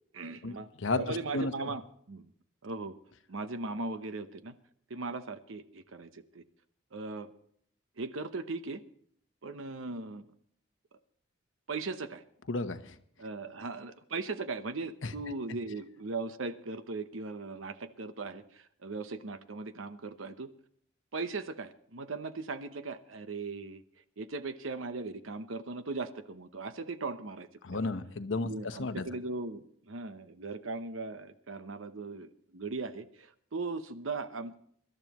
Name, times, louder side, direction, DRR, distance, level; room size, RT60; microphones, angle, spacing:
voice 1, 0.1-0.7 0.9-2.3 2.6-3.0 3.3-4.6 4.9-6.4 6.9-7.3 8.0-8.8 9.4-10.3 11.7-12.2 13.2-20.5 21.1-23.8 24.2-27.9 28.5-34.6, right 3 dB, 85° right, 11 dB, 0.9 m, -38 dB
voice 2, 0.8-1.7 12.5-13.0 15.0-15.1 27.6-29.0, left 2 dB, 70° left, 10 dB, 0.9 m, -33 dB
25.0 x 12.0 x 3.0 m, 0.63 s
head